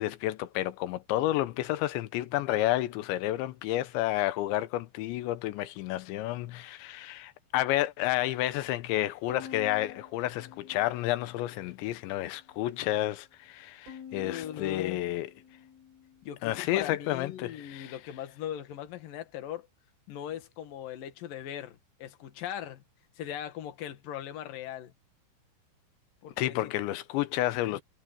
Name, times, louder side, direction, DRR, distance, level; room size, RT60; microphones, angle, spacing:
voice 1, 0.0-15.3 16.4-18.0 26.4-27.8, left 15 dB, 80° left, 3.2 m, -30 dB
Bowed string instrument, 9.3-11.7 12.1-12.9 13.9-16.4, left 7 dB, 75° right, 7.7 m, -49 dB
voice 2, 14.1-15.0 16.2-19.7 20.1-22.8 23.2-24.9 26.2-26.7 27.7-27.8, left 10 dB, 60° left, 3.1 m, -39 dB
omnidirectional pair, 5.2 m